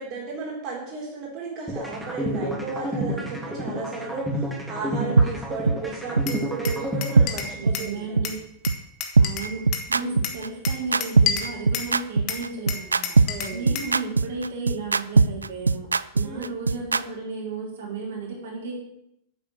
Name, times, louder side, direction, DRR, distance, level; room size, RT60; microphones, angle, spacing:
voice 1, 0.0-8.3 10.0-10.2 13.3-13.7 16.2-16.5, right 4 dB, 35° right, -3 dB, 3.8 m, -34 dB
sound 1, 1.7-7.7, equal, ahead, 2.8 m, -30 dB
sound 2, 5.2-5.3 5.7-5.8 6.2-6.3 6.7-6.8 7.2-7.3 7.7-7.8 8.2-8.3 8.7-8.8 9.2-17.0, right 4 dB, 75° right, 0.4 m, -19 dB
Glass, 6.3-7.9 8.2-9.9 10.2-11.9 12.3-14.0, left 7 dB, 40° left, 1.8 m, -31 dB
voice 2, 7.5-8.5 9.2-15.9 16.1-18.8, right 4 dB, 60° right, -3 dB, 4.4 m, -34 dB
9.7 x 8.5 x 7.7 m, 0.77 s
figure-of-eight pair, 90°, 0 cm